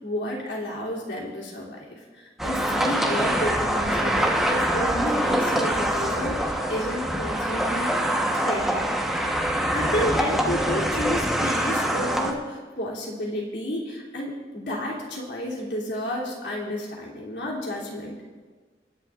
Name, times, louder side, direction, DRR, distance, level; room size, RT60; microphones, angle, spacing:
voice 1, 0.0-7.9 8.3-8.9 9.7-18.2, equal, 75° left, -4 dB, 3.0 m, -31 dB
sound 1, 2.4-12.3, right 1 dB, ahead, 1.1 m, -24 dB
28.0 x 11.0 x 2.5 m, 1.4 s
head